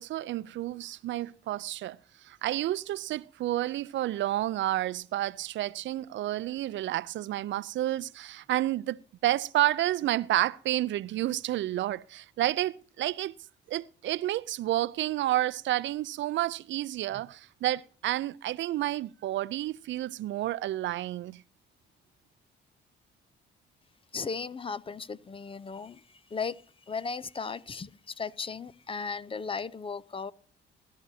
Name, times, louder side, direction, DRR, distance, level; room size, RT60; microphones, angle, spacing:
voice 1, 0.0-13.3 13.7-21.4, right 14 dB, 70° right, 0.5 m, -30 dB
voice 2, 24.1-30.3, left 5 dB, 25° left, 0.5 m, -36 dB
20.5 x 11.5 x 2.7 m
cardioid pair, 90°, 20 cm